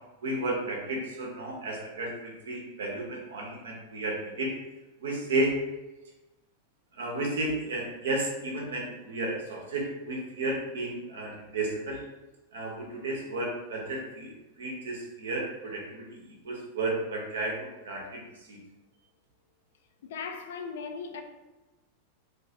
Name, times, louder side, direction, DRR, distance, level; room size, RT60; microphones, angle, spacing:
voice 1, 0.2-4.5 5.0-5.5 6.9-12.0 12.5-18.2 18.5-18.6, right 2 dB, 65° right, 0.7 m, -33 dB
voice 2, 20.0-21.2, left 5 dB, 60° left, 0.4 m, -38 dB
3.2 x 2.3 x 2.7 m
figure-of-eight pair, 90°, 0 cm